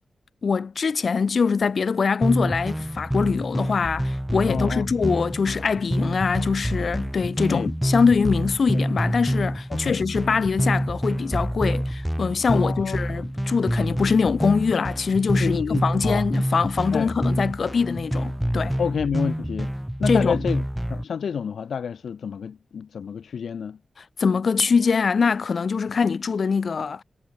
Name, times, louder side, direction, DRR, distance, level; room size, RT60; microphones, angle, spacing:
voice 1, 0.4-18.8 20.1-20.4 24.2-27.0, left 5 dB, 65° left, 1.3 m, -23 dB
sound 1, 2.2-21.0, equal, 5° right, 4.5 m, -27 dB
voice 2, 4.4-4.8 7.5-7.7 9.7-10.0 12.5-13.0 15.4-16.2 16.9-17.1 18.8-19.7 20.0-20.6 20.9-23.8, left 7 dB, 80° left, 0.7 m, -29 dB
cardioid pair, 55°, 0 cm